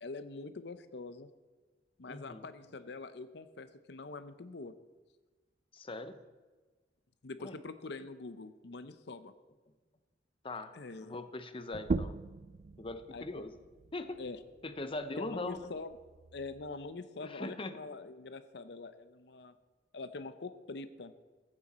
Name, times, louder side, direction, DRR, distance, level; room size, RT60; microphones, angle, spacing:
voice 1, 0.0-1.3 2.0-4.7 7.2-9.3 10.7-11.1 13.1-13.4 14.2-14.4 15.2-15.9 16.3-19.5 19.9-21.1, left 3 dB, 65° left, 12 dB, 0.7 m, -44 dB
voice 2, 2.1-2.5 5.7-6.2 7.4-7.6 10.4-10.7 11.0-12.2 12.8-13.5 13.9-14.2 14.6-15.7 17.2-17.8, left 2 dB, 30° left, 10 dB, 0.8 m, -41 dB
sound 1, 11.7-16.9, right 3 dB, 40° right, 0.3 m, -41 dB
15.0 x 8.9 x 4.2 m, 1.3 s
head